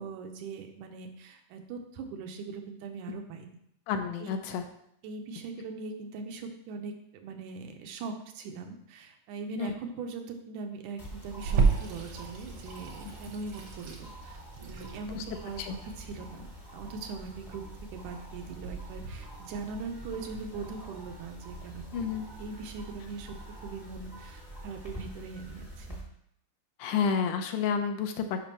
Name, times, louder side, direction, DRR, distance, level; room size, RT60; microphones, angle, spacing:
voice 1, 0.0-3.5 4.2-4.3 5.0-14.4 14.7-16.5 16.7-17.6 17.9-21.8 22.4-23.4 23.6-26.0, right 4 dB, 85° right, 4 dB, 2.3 m, -41 dB
voice 2, 3.9-4.6 9.6-9.7 15.1-15.2 15.6-15.8 21.9-22.3 26.8-28.4, left 6 dB, 85° left, 6 dB, 2.2 m, -30 dB
sound 1, 11.0-26.0, right 1 dB, 30° left, 0.6 m, -46 dB
Water tap faucet / Sink (filling or washing), 11.5-20.4, right 5 dB, 65° right, 1.3 m, -33 dB
10.0 x 5.3 x 2.9 m, 0.73 s
omnidirectional pair, 3.5 m